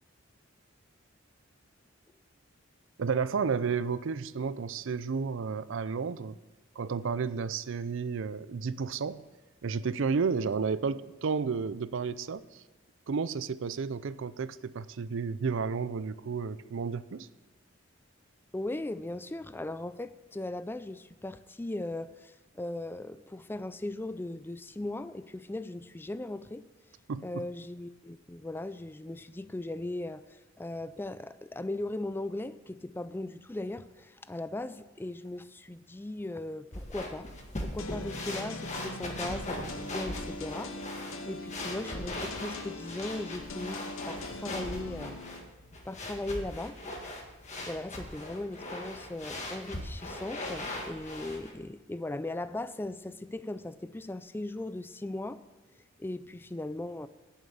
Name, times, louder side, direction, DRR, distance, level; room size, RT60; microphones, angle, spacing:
voice 1, 3.0-6.4 6.8-9.2 9.6-12.4 13.1-17.3 27.1-27.4, right 5 dB, 65° right, 0.5 m, -32 dB
voice 2, 18.5-26.6 27.2-37.3 37.6-40.7 41.3-43.8 44.1-45.2 45.9-46.8 47.7-55.4 56.0-57.1, left 2 dB, 10° left, 0.4 m, -38 dB
sound 1, 36.7-51.5, left 1 dB, 35° left, 1.8 m, -40 dB
sound 2, 37.8-45.4, left 2 dB, 85° left, 1.1 m, -42 dB
8.7 x 7.4 x 8.6 m
head